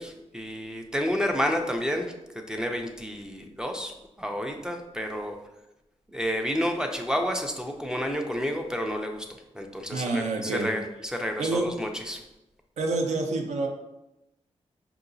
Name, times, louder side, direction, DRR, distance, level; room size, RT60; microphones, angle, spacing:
voice 1, 0.0-2.1 2.5-5.4 6.1-9.3 9.5-12.2, equal, 5° right, 4 dB, 0.4 m, -30 dB
voice 2, 9.9-10.7 11.4-11.6 12.8-13.7, right 3 dB, 75° right, 2 dB, 0.6 m, -27 dB
4.7 x 2.8 x 2.6 m, 0.93 s
wide cardioid pair, 120°, 12 cm